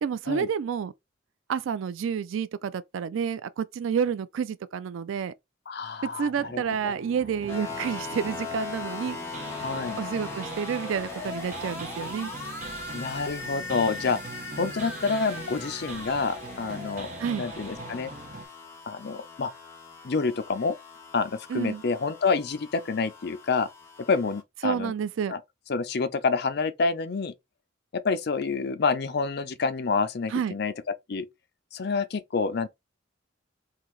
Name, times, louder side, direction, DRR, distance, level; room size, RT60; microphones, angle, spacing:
voice 1, 0.0-0.9 1.5-5.3 6.0-9.2 10.0-12.3 17.2-17.4 21.5-21.8 24.6-25.3 30.3-30.5, right 7 dB, 85° right, 0.3 m, -29 dB
voice 2, 5.7-6.9 9.6-10.0 12.9-14.2 14.6-17.1 17.4-18.1 18.9-19.5 20.0-20.8 21.1-23.7 24.1-24.9 25.3-25.4 25.7-27.3 27.9-30.7 31.1-31.3 31.7-32.7, left 4 dB, 55° left, 0.5 m, -28 dB
sound 1, 6.3-18.4, right 3 dB, 40° right, 0.7 m, -42 dB
sound 2, 7.5-24.4, left 4 dB, 15° left, 1.2 m, -39 dB
3.7 x 2.7 x 3.1 m
head